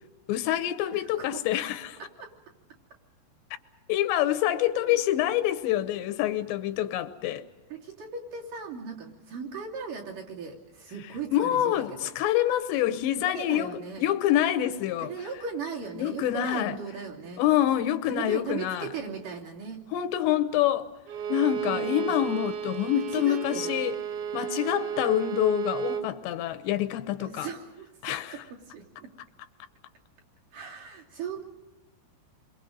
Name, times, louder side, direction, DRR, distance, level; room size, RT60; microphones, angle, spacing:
voice 1, 0.3-2.0 3.9-7.5 11.3-15.1 16.0-16.8 17.4-18.9 19.9-20.9 21.3-24.0 24.3-27.5 28.0-28.4, left 12 dB, 80° left, 3.0 m, -26 dB
voice 2, 0.9-1.4 2.0-2.3 4.5-5.0 7.7-12.1 13.2-14.1 15.0-17.4 18.1-19.8 21.6-22.3 22.9-23.7 27.2-29.1 30.5-31.4, right 5 dB, 50° right, 4.1 m, -38 dB
Bowed string instrument, 21.1-26.1, right 8 dB, 70° right, 2.7 m, -33 dB
29.0 x 23.5 x 5.3 m
omnidirectional pair, 5.2 m